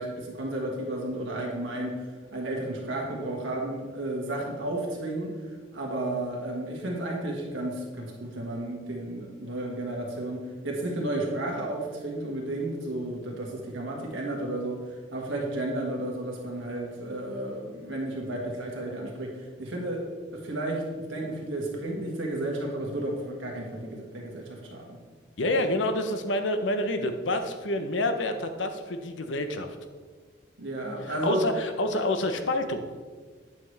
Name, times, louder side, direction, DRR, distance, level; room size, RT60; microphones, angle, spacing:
voice 1, 0.0-5.4 5.7-25.0 30.6-31.4, right 1 dB, 90° right, -1 dB, 1.7 m, -32 dB
voice 2, 25.4-29.7 31.1-32.9, left 1 dB, 75° left, 7 dB, 0.7 m, -28 dB
9.0 x 5.8 x 3.3 m, 1.5 s
head